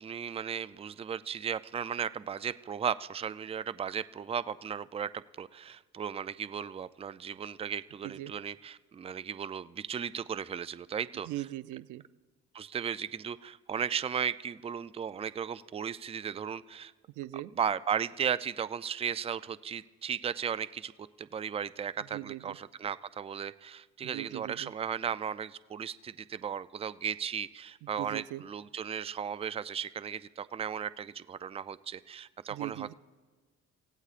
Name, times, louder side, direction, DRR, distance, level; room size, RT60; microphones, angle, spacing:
voice 1, 0.0-11.3 12.5-16.9 17.6-20.9 21.2-32.9, right 7 dB, 20° right, 15 dB, 0.4 m, -36 dB
voice 2, 11.3-12.0 17.2-17.5 22.1-22.6 24.0-24.7 28.0-28.4 32.5-32.9, right 16 dB, 90° right, 17 dB, 0.5 m, -40 dB
27.0 x 16.0 x 2.5 m, 1.4 s
cardioid pair, 90°, 30 cm